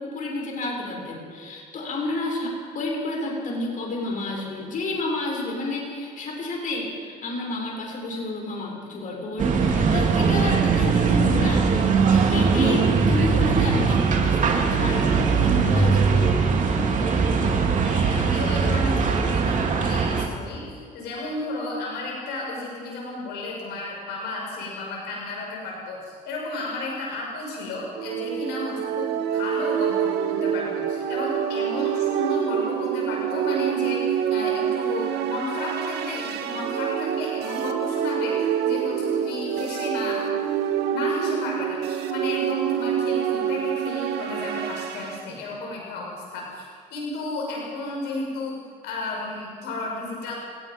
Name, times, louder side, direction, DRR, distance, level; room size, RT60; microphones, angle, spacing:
voice 1, 0.0-16.2, left 2 dB, 50° left, -1 dB, 6.7 m, -30 dB
sound 1, 9.4-20.3, right 5 dB, 50° right, 2.8 m, -20 dB
voice 2, 17.8-40.2 40.9-50.3, left 2 dB, 90° left, -2 dB, 6.0 m, -33 dB
sound 2, 27.9-45.2, right 9 dB, 80° right, 1.8 m, -26 dB
28.5 x 19.5 x 5.4 m, 2.1 s
cardioid pair, 110°, 17 cm